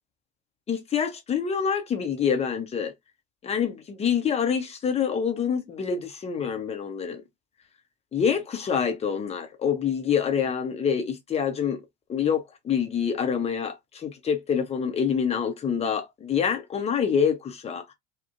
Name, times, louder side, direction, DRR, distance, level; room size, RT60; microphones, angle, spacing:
voice 1, 0.7-2.9 3.4-7.2 8.1-11.8 12.1-17.8, left 7 dB, 15° left, 0.5 m, -26 dB
2.4 x 2.1 x 2.5 m
figure-of-eight pair, 65°, 45 cm